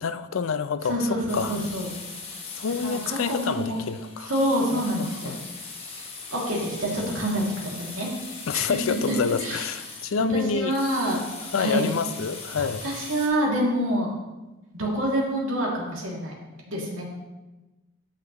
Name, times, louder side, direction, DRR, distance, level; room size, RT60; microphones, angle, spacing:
voice 1, 0.0-1.6 2.6-4.3 4.7-5.4 8.5-10.8 11.5-12.8, left 5 dB, 80° left, 0.4 m, -28 dB
voice 2, 0.8-1.9 2.8-3.8 4.2-5.4 6.3-8.1 8.5-9.7 10.3-11.2 11.5-11.9 12.5-14.1 14.7-16.3 16.7-17.0, right 1 dB, 80° right, 2.4 m, -27 dB
sound 1, 1.3-13.3, left 4 dB, 30° left, 1.3 m, -40 dB
14.0 x 5.8 x 3.0 m
head